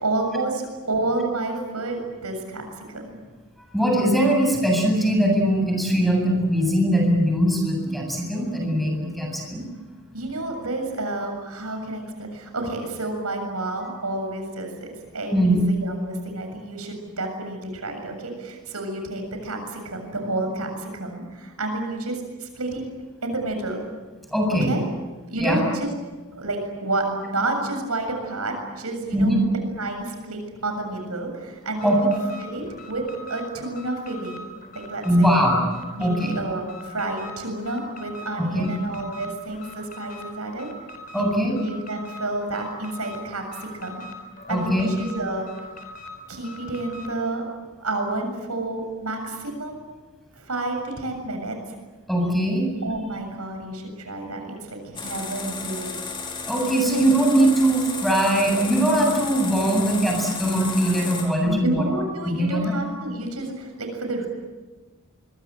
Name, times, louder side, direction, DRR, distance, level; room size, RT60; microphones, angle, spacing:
voice 1, 0.0-2.6 2.9-3.1 10.1-22.8 23.2-23.8 24.6-24.8 25.3-25.9 26.3-29.4 29.8-32.1 32.4-33.0 33.3-34.4 34.7-35.3 35.9-40.7 41.1-44.0 44.5-45.5 46.3-47.5 47.8-49.8 50.4-51.7 52.8-55.9 61.4-64.3, right 2 dB, 90° right, 4 dB, 7.3 m, -30 dB
voice 2, 3.7-9.6 15.3-15.6 24.3-24.7 25.4-25.6 29.1-29.4 31.8-32.0 35.0-35.6 36.0-36.3 38.4-38.7 41.1-41.5 44.5-44.9 52.1-52.7 56.4-61.8 62.3-62.7, right 1 dB, ahead, 1 dB, 7.9 m, -21 dB
Alarm, 31.7-47.2, left 1 dB, 40° left, 4.1 m, -42 dB
sound 1, 54.9-61.2, left 4 dB, 25° left, 4.7 m, -33 dB
25.0 x 23.5 x 9.0 m, 1.3 s
head